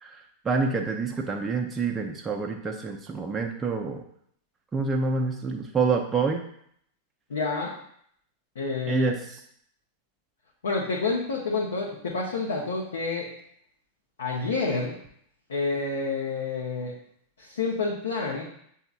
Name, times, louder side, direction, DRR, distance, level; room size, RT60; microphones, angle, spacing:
voice 1, 0.0-4.0 4.7-6.4 8.9-9.2, right 4 dB, 15° right, 1 dB, 0.6 m, -27 dB
voice 2, 7.3-7.7 8.5-9.1 10.6-13.3 14.2-15.0 15.5-16.9 17.4-18.4, left 4 dB, 65° left, -4 dB, 0.9 m, -28 dB
7.7 x 2.8 x 2.5 m, 0.67 s
figure-of-eight pair, 90°, 0 cm